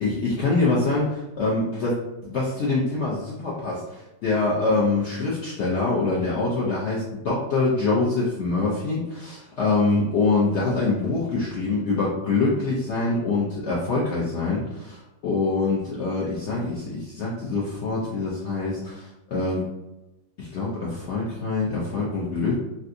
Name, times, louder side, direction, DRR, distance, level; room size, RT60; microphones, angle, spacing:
voice 1, 0.0-19.7 20.4-22.6, left 3 dB, 75° left, -5 dB, 0.6 m, -25 dB
3.3 x 2.6 x 2.5 m, 0.99 s
omnidirectional pair, 1.8 m